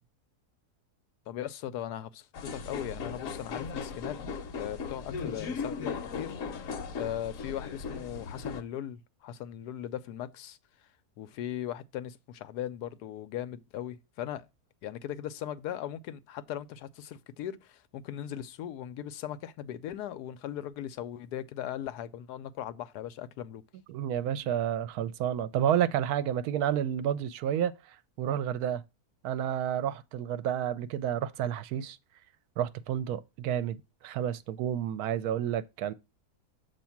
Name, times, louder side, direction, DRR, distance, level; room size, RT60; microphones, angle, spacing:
voice 1, 1.3-4.2 4.6-10.6 11.2-14.5 14.8-23.6, left 11 dB, 90° left, 1.2 m, -38 dB
sound 1, 2.3-8.6, left 5 dB, 65° left, 1.1 m, -37 dB
voice 2, 23.9-28.8 29.2-32.0 32.6-33.8 34.0-35.9, right 10 dB, 75° right, 1.0 m, -30 dB
7.1 x 2.8 x 5.7 m
omnidirectional pair, 1.7 m